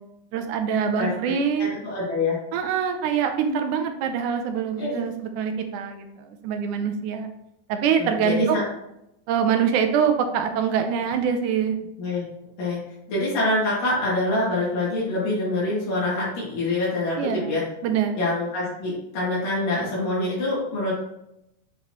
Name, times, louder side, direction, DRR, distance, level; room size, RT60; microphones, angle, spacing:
voice 1, 0.3-1.7 2.5-7.3 7.7-8.6 9.3-11.8 17.2-17.5 17.8-18.2, right 7 dB, 75° right, 6 dB, 2.0 m, -24 dB
voice 2, 1.0-1.3 1.6-2.4 4.8-5.0 8.0-8.6 12.0-12.2 12.6-12.8 13.1-17.6 18.2-20.9, left 2 dB, 80° left, -8 dB, 3.9 m, -25 dB
8.4 x 4.6 x 3.0 m, 0.84 s
omnidirectional pair, 3.8 m